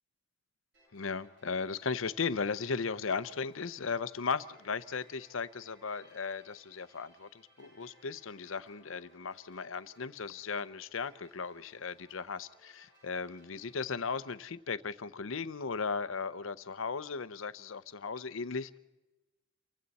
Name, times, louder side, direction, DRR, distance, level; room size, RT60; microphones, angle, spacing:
sound 1, 0.7-14.4, equal, 60° right, 7.4 m, -64 dB
voice 1, 0.9-7.3 7.6-18.8, left 5 dB, 85° left, 0.7 m, -36 dB
29.0 x 23.5 x 4.2 m
head